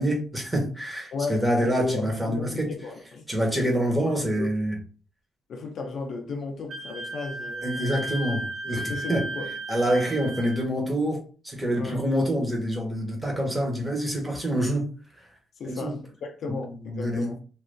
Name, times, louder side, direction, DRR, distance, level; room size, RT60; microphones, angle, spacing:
voice 1, 0.0-2.7 3.3-4.8 7.6-9.2 9.7-14.9 15.2-15.3 15.6-16.0 16.5-17.3, equal, 10° right, 1.3 m, -26 dB
voice 2, 1.1-3.3 4.1-4.5 5.5-7.7 8.9-9.5 11.8-12.0 15.6-17.4, left 3 dB, 60° left, 0.6 m, -35 dB
Wind instrument woodwind instrument, 6.7-10.7, right 2 dB, 60° right, 0.6 m, -35 dB
2.6 x 2.5 x 3.4 m
cardioid pair, 90°, 0 cm